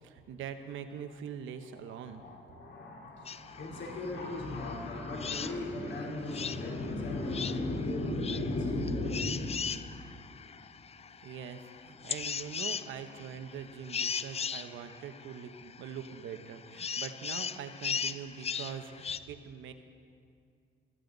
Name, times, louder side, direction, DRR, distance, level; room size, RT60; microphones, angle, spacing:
voice 1, 0.0-2.2 11.2-19.7, right 8 dB, 80° right, 8 dB, 1.1 m, -43 dB
voice 2, 1.7-11.3 12.0-12.1, left 2 dB, 65° left, -2 dB, 3.6 m, -36 dB
sound 1, 3.2-19.2, left 6 dB, 30° left, 0.5 m, -39 dB
20.5 x 15.0 x 4.0 m, 2.3 s
cardioid pair, 90°, 20 cm